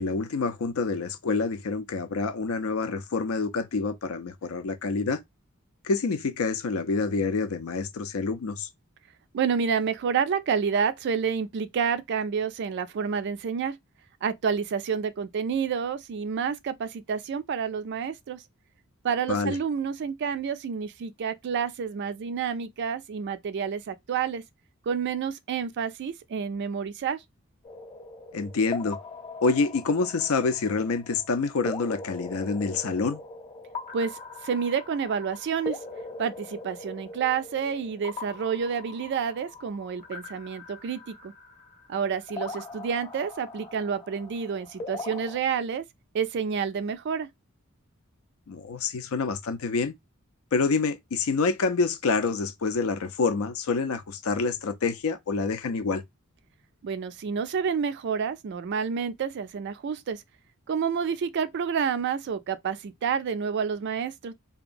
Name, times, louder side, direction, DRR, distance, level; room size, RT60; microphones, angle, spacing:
voice 1, 0.0-5.2 5.8-8.7 19.3-19.6 28.3-29.0 29.4-33.2 48.5-49.9 50.5-56.0, left 4 dB, 85° left, 0.5 m, -27 dB
voice 2, 9.3-13.8 14.2-18.4 19.0-24.4 24.9-27.2 33.9-34.2 34.4-35.8 36.2-41.3 41.9-45.8 46.1-47.3 56.8-60.2 60.7-64.3, right 6 dB, 55° right, 0.3 m, -29 dB
sound 1, 27.6-45.4, left 3 dB, 30° left, 0.8 m, -41 dB
2.8 x 2.3 x 2.5 m
head